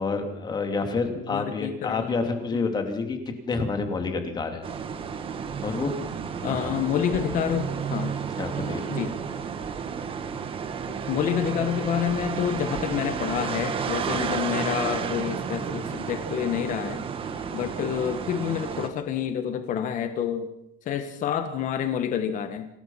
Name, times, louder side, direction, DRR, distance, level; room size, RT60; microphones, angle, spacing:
voice 1, 0.0-3.2 3.5-4.7 5.6-5.9 6.4-6.7 8.4-8.9 17.2-17.5, left 4 dB, 20° left, 5 dB, 3.0 m, -29 dB
voice 2, 1.3-2.2 2.5-2.7 6.4-7.6 7.9-8.2 8.9-9.2 11.1-17.0 17.5-20.5 20.8-22.7, left 9 dB, 45° left, 8 dB, 1.6 m, -28 dB
sound 1, 4.6-18.9, right 6 dB, 30° right, 1.7 m, -32 dB
26.0 x 19.0 x 5.8 m, 0.81 s
cardioid pair, 170°, 19 cm